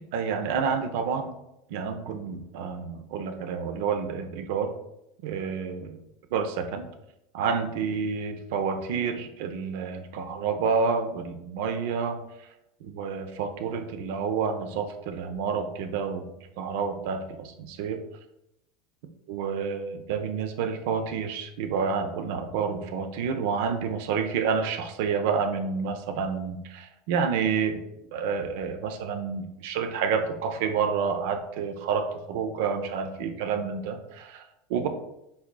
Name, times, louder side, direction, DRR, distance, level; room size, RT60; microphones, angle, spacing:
voice 1, 0.0-1.3 1.7-4.7 5.2-6.0 6.3-6.9 7.3-12.5 12.8-18.0 19.3-27.8 28.1-34.4 34.7-34.9, right 6 dB, 70° right, 8 dB, 0.5 m, -29 dB
5.6 x 4.1 x 2.2 m, 0.86 s
hypercardioid pair, 100°, 0 cm